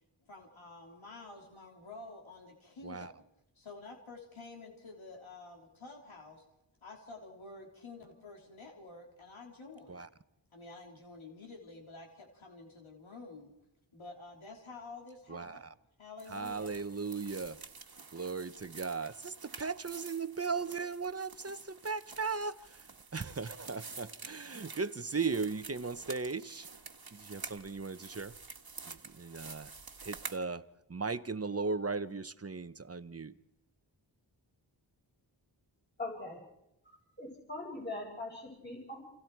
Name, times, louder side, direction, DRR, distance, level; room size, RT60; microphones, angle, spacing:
voice 1, 0.2-3.2 3.5-6.4 6.8-10.1 10.5-13.5 13.9-15.7 16.0-16.7, left 3 dB, 90° left, 3.4 m, -50 dB
voice 2, 15.3-15.7 16.3-17.6 18.1-26.7 27.1-28.3 28.9-29.7 30.0-33.4, right 4 dB, 30° right, 0.9 m, -37 dB
sound 1, 16.2-30.4, right 4 dB, 50° right, 1.6 m, -49 dB
voice 3, 36.0-36.4 37.2-39.0, left 2 dB, 20° left, 6.0 m, -41 dB
29.5 x 27.5 x 4.6 m
wide cardioid pair, 55°, 46 cm